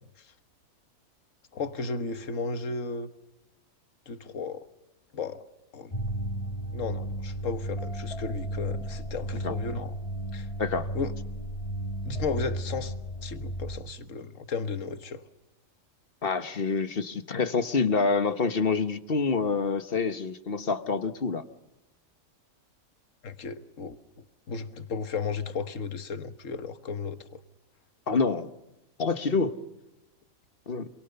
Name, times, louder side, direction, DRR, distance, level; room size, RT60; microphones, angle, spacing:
voice 1, 1.5-3.1 4.1-4.6 5.1-5.4 5.7-5.9 6.7-10.0 10.3-10.5 10.9-11.1 12.0-12.9 13.2-15.2 23.2-27.3, left 4 dB, 65° left, 1.7 m, -34 dB
sound 1, 5.9-13.8, right 1 dB, 25° left, 1.7 m, -34 dB
voice 2, 16.2-21.4 28.1-28.5 29.0-29.6 30.7-30.9, left 4 dB, 45° left, 1.4 m, -27 dB
27.0 x 24.0 x 6.9 m
omnidirectional pair, 1.4 m